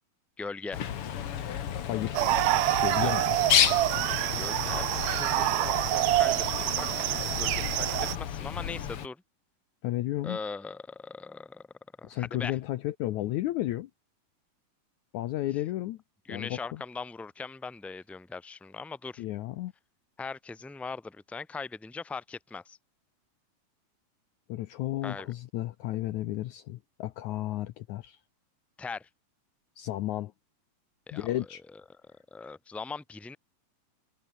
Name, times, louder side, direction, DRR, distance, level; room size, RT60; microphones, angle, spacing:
voice 1, 0.4-0.8 3.0-3.1 4.4-9.2 10.2-11.6 12.0-12.5 16.3-19.2 20.2-22.8 25.0-25.3 28.8-29.1 31.1-31.3 32.3-33.4, left 4 dB, ahead, 1.7 m, -40 dB
Bird, 0.7-9.1, left 9 dB, 50° left, 1.8 m, -31 dB
voice 2, 1.9-2.2 2.8-3.4 9.8-10.4 12.0-13.9 15.1-16.0 16.3-16.8 19.2-19.7 24.5-28.2 29.8-30.3 31.1-31.6, left 15 dB, 75° left, 1.9 m, -33 dB
sound 1, 2.1-8.2, right 16 dB, 90° right, 1.5 m, -27 dB
omnidirectional pair, 4.1 m